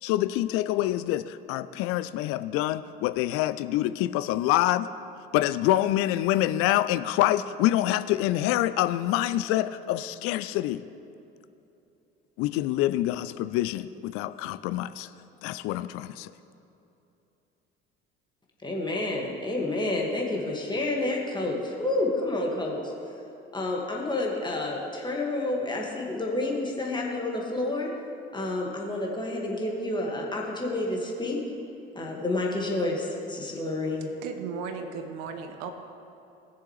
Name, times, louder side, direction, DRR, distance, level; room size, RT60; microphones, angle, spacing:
voice 1, 0.0-4.9 5.3-10.8 12.4-15.1 15.4-16.3, left 14 dB, 50° left, 13 dB, 0.5 m, -26 dB
voice 2, 18.6-22.8 23.5-27.9 28.3-31.4 31.9-34.1, left 2 dB, 15° left, -1 dB, 2.0 m, -29 dB
voice 3, 34.2-35.7, right 6 dB, 55° right, 6 dB, 0.8 m, -35 dB
19.5 x 6.9 x 3.3 m, 2.8 s
figure-of-eight pair, 60°, 30 cm